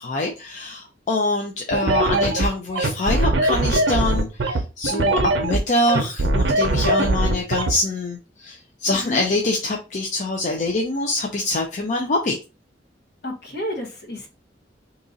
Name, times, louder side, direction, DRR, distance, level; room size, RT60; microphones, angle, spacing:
voice 1, 0.0-12.4, left 2 dB, 40° left, 2 dB, 0.5 m, -25 dB
sound 1, 1.7-7.7, right 1 dB, 75° right, 0.6 m, -21 dB
voice 2, 8.8-9.2 13.2-14.3, left 1 dB, 60° left, 0 dB, 1.1 m, -31 dB
2.9 x 2.6 x 3.7 m, 0.30 s
head